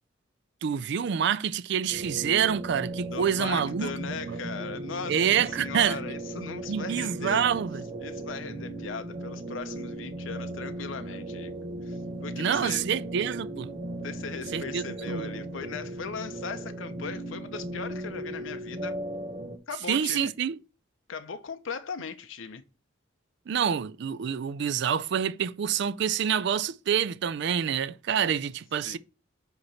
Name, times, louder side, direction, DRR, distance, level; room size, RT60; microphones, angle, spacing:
voice 1, 0.6-4.4 5.1-6.0 6.7-7.8 12.4-13.7 14.5-15.3 19.9-20.6 23.5-29.0, right 8 dB, 65° right, 0.4 m, -27 dB
sound 1, 1.9-19.6, right 1 dB, 35° right, 0.9 m, -37 dB
voice 2, 3.1-5.2 5.5-7.5 8.0-11.5 11.8-12.9 14.0-19.0 19.7-20.3 21.1-22.6 28.8-29.0, left 5 dB, 85° left, 0.7 m, -38 dB
7.7 x 3.0 x 5.6 m
head